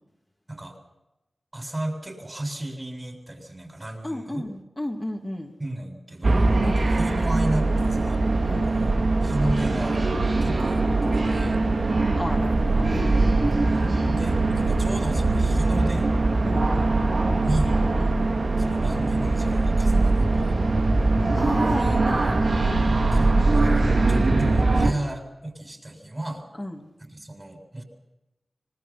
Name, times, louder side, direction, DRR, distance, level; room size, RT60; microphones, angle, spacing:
voice 1, 1.5-4.5 5.6-8.2 8.6-8.9 9.2-10.0 10.4-11.6 13.6-16.1 17.4-17.8 18.6-20.6 23.1-26.5 27.0-27.8, right 1 dB, 30° right, 4 dB, 7.4 m, -33 dB
voice 2, 4.0-5.5 6.6-6.8 8.4-8.7 12.1-13.2 16.4-16.9 18.0-18.2 21.4-22.9 26.6-26.9, left 1 dB, 20° left, 0 dB, 2.7 m, -33 dB
sound 1, 6.2-24.9, right 2 dB, 70° right, 2.9 m, -21 dB
26.0 x 20.5 x 6.0 m, 0.97 s
cardioid pair, 45°, 0 cm